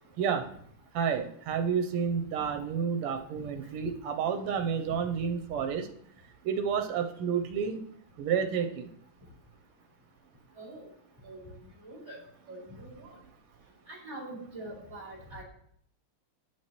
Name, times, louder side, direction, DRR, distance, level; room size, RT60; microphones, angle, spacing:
voice 1, 0.2-0.5 0.9-5.9 6.4-7.8 8.2-8.9, right 7 dB, 90° right, 7 dB, 1.6 m, -30 dB
voice 2, 11.8-12.2 12.5-13.0 13.9-15.4, right 1 dB, 15° right, -7 dB, 2.6 m, -43 dB
9.5 x 6.3 x 3.0 m, 0.65 s
omnidirectional pair, 2.4 m